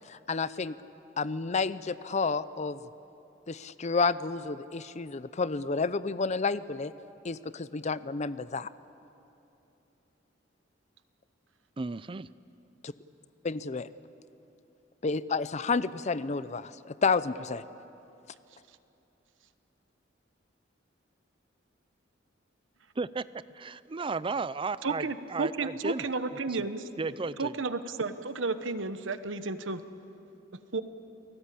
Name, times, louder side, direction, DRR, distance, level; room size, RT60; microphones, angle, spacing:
voice 1, 0.1-0.7 1.2-2.8 3.5-6.9 7.2-8.7 12.8-12.9 13.4-13.9 15.0-17.6, left 4 dB, 35° left, 15 dB, 0.6 m, -30 dB
voice 2, 11.8-12.3 23.0-26.0 26.5-26.6 27.0-27.5, right 4 dB, 25° right, 16 dB, 0.5 m, -34 dB
voice 3, 24.8-26.9 27.4-29.8 30.7-30.8, right 3 dB, 90° right, 11 dB, 1.1 m, -32 dB
29.5 x 19.0 x 8.5 m, 2.9 s
head